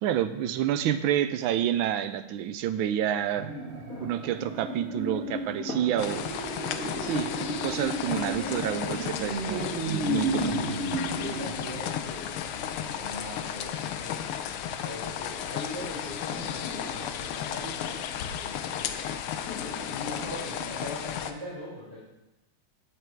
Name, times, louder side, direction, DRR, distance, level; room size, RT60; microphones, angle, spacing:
voice 1, 0.0-3.5 4.0-6.3 7.0-7.3 7.6-10.6, right 10 dB, 75° right, 11 dB, 1.3 m, -28 dB
sound 1, 3.4-12.5 12.8-12.9, right 1 dB, 40° right, 1.1 m, -34 dB
sound 2, 3.6-21.3, left 4 dB, 45° left, 1.6 m, -46 dB
sound 3, 6.0-21.3, left 9 dB, 85° left, 1.6 m, -34 dB
voice 2, 11.1-14.2 14.8-18.0 18.3-19.0 19.9-22.0, left 1 dB, 10° right, -12 dB, 3.9 m, -41 dB
10.5 x 6.7 x 4.5 m, 0.93 s
omnidirectional pair, 2.4 m